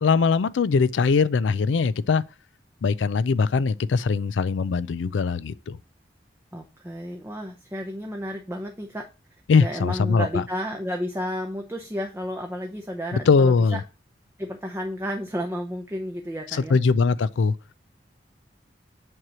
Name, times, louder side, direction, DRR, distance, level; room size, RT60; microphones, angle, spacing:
voice 1, 0.0-2.2 2.8-5.8 9.5-10.4 13.1-13.8 16.5-17.5, left 5 dB, 90° left, 0.4 m, -21 dB
voice 2, 6.5-9.1 9.6-13.8 14.4-16.8, equal, 15° right, 0.6 m, -32 dB
7.7 x 3.0 x 6.1 m
head